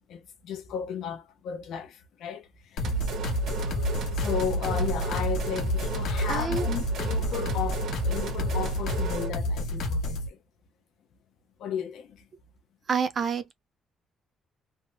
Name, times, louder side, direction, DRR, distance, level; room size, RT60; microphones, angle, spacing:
voice 1, 0.1-2.8 4.1-10.4 11.6-12.2, left 8 dB, 65° left, 0.7 m, -34 dB
sound 1, 2.8-10.3, left 1 dB, 85° left, 1.3 m, -30 dB
sound 2, 2.8-9.4, right 4 dB, 65° right, 1.1 m, -33 dB
voice 2, 6.3-6.7 12.9-13.5, right 6 dB, 30° right, 0.5 m, -28 dB
3.4 x 2.1 x 2.6 m
cardioid pair, 180°, 0 cm